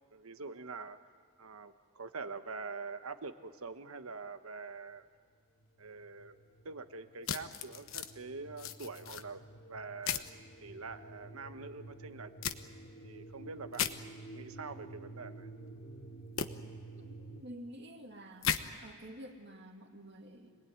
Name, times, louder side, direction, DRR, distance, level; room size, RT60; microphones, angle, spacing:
voice 1, 0.1-1.0 1.4-5.1 5.8-6.4 6.6-9.4 9.7-10.2 10.6-12.3 13.0-13.8 14.3-15.5, right 4 dB, 80° right, 9 dB, 1.2 m, -45 dB
sound 1, 5.4-17.4, right 2 dB, 55° left, 2.0 m, -51 dB
sound 2, 7.2-8.1 8.6-9.2 10.0-10.3 12.4-12.6 13.7-13.9 16.4-16.5 18.4-18.6, left 8 dB, 70° left, 1.1 m, -35 dB
voice 2, 17.0-18.5 18.8-20.6, equal, 50° right, 3 dB, 2.4 m, -49 dB
26.0 x 19.5 x 9.6 m, 2.1 s
head